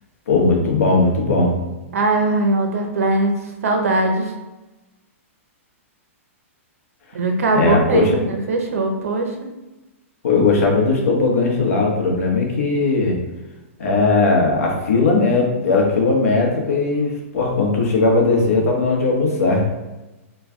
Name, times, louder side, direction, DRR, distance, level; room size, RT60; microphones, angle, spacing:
voice 1, 0.3-1.5 7.5-8.2 10.2-13.2 13.8-19.6, left 3 dB, 85° left, -1 dB, 1.0 m, -18 dB
voice 2, 1.9-3.3 3.6-4.3 7.1-9.3, right 2 dB, 90° right, 3 dB, 0.7 m, -20 dB
3.1 x 2.3 x 3.6 m, 1.1 s
hypercardioid pair, 175°, 8 cm